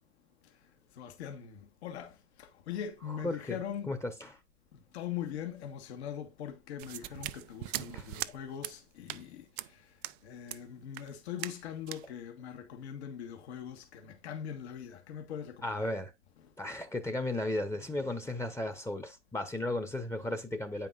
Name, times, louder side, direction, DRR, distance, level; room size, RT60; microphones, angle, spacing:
voice 1, 0.4-4.0 4.7-15.9 16.4-16.5, left 9 dB, 60° left, 1.6 m, -42 dB
voice 2, 3.2-3.6 3.9-4.1 7.9-8.1 15.6-16.1 16.6-20.9, left 1 dB, 10° left, 1.0 m, -34 dB
sound 1, 6.8-8.3 8.6-8.8 9.1-9.2 9.6-9.7 10.0-10.2 10.5-10.6 10.9-11.1 11.4-11.6 11.9-12.0, right 17 dB, 45° right, 0.5 m, -40 dB
9.0 x 5.4 x 2.5 m
hypercardioid pair, 100°, 36 cm